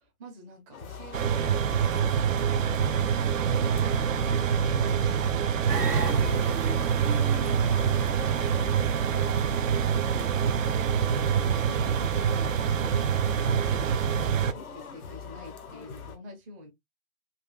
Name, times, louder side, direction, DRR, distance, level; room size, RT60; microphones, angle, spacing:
voice 1, 0.0-1.5 10.1-10.3 11.7-13.9 14.3-16.7, right 1 dB, 10° right, 0.6 m, -47 dB
sound 1, 0.7-16.2, left 5 dB, 70° left, 0.9 m, -43 dB
sound 2, 1.1-14.5, right 7 dB, 60° right, 0.5 m, -25 dB
sound 3, 5.7-14.5, right 3 dB, 90° right, 1.1 m, -39 dB
4.0 x 2.3 x 2.3 m
figure-of-eight pair, 130°, 45 cm